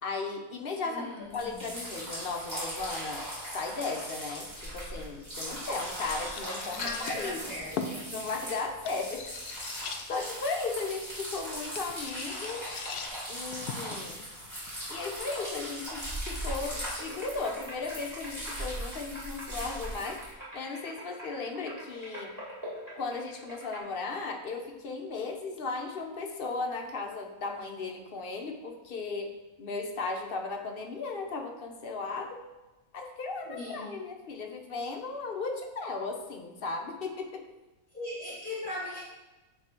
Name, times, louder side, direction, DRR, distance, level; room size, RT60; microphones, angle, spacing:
voice 1, 0.0-3.2 3.5-6.8 7.1-7.4 8.1-9.2 9.6-9.7 10.1-12.7 13.3-14.2 14.9-20.2 20.5-22.3 23.0-29.3 29.6-32.4 32.9-37.4, left 3 dB, 45° left, 3 dB, 0.9 m, -36 dB
voice 2, 0.8-1.7 6.7-8.2 33.4-34.0 37.9-39.0, left 1 dB, 5° left, -7 dB, 1.4 m, -39 dB
sound 1, 1.3-20.3, equal, 30° right, 2.8 m, -39 dB
sound 2, 4.9-15.9, left 5 dB, 85° left, 1.2 m, -43 dB
sound 3, 16.6-23.8, equal, 15° right, 1.9 m, -45 dB
9.2 x 3.4 x 4.4 m, 1.1 s
omnidirectional pair, 1.6 m